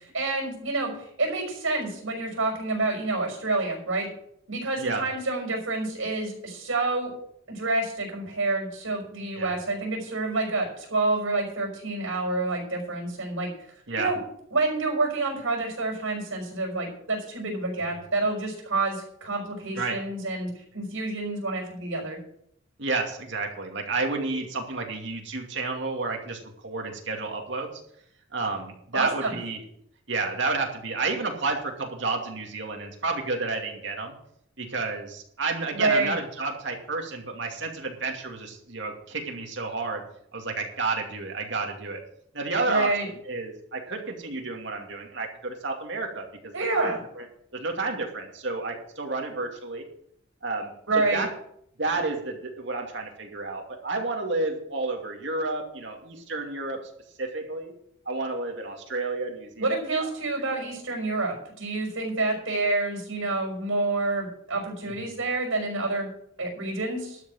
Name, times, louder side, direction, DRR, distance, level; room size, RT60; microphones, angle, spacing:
voice 1, 0.1-4.1 4.5-7.1 7.5-13.5 13.9-14.2 14.5-22.2 28.9-29.3 35.7-36.1 42.7-43.1 46.5-47.0 50.9-51.2 59.6-66.1 66.4-67.2, right 2 dB, 75° right, -3 dB, 5.2 m, -28 dB
voice 2, 22.8-27.7 28.3-29.6 30.1-34.1 34.6-40.0 40.3-42.0 42.3-42.9 43.2-47.3 47.5-49.8 50.4-51.3 51.8-56.8 57.2-57.7 58.0-60.6 65.0-65.1, right 3 dB, 60° right, 2 dB, 2.5 m, -31 dB
12.5 x 6.0 x 8.9 m, 0.70 s
head